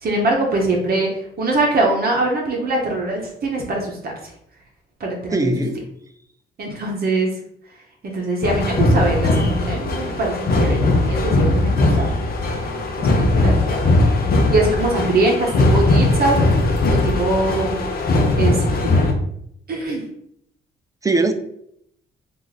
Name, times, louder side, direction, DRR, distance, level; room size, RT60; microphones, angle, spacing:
voice 1, 0.0-4.3 5.0-5.5 6.6-7.3 8.0-12.2 13.0-13.9 14.5-16.6 16.9-17.8 18.4-19.1 19.7-20.0, right 2 dB, 50° right, 0 dB, 0.8 m, -22 dB
voice 2, 5.3-5.8 21.0-21.3, right 2 dB, 15° right, 7 dB, 0.4 m, -19 dB
sound 1, 8.4-19.1, left 2 dB, 50° left, 0.7 m, -19 dB
3.1 x 2.5 x 3.9 m, 0.72 s
cardioid pair, 90°, 20 cm